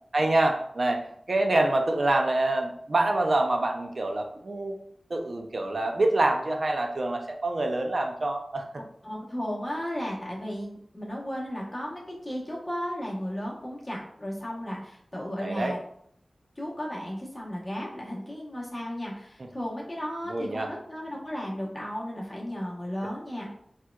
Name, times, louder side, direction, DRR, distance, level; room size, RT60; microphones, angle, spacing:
voice 1, 0.1-4.8 5.1-8.7 15.4-15.7 20.3-20.7, right 2 dB, 55° right, 3 dB, 0.5 m, -26 dB
voice 2, 9.0-15.8 16.6-23.5, equal, 20° left, -4 dB, 1.1 m, -34 dB
4.4 x 2.4 x 2.3 m, 0.66 s
wide cardioid pair, 80°, 0 cm